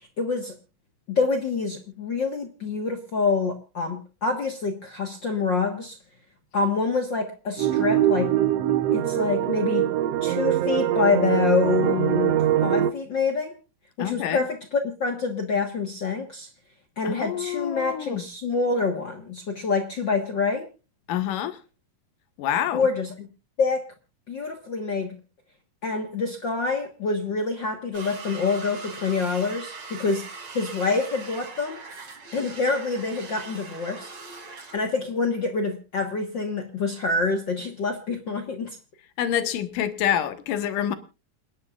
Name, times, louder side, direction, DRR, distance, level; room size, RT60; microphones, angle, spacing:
voice 1, 0.2-0.5 1.1-5.9 6.5-8.3 8.9-9.9 10.2-13.6 14.0-16.5 17.0-20.7 22.7-23.3 23.6-23.8 24.3-25.1 25.8-30.2 30.5-34.1 34.7-38.8, left 4 dB, 55° left, 1.3 m, -26 dB
sound 1, 7.6-12.9, right 12 dB, 75° right, 1.4 m, -23 dB
voice 2, 14.0-14.5 17.0-18.2 21.1-21.6 22.4-22.9 39.2-41.0, left 10 dB, 70° left, 2.8 m, -27 dB
sound 2, 27.9-34.8, right 4 dB, 40° right, 3.3 m, -41 dB
28.5 x 10.5 x 2.4 m
omnidirectional pair, 4.2 m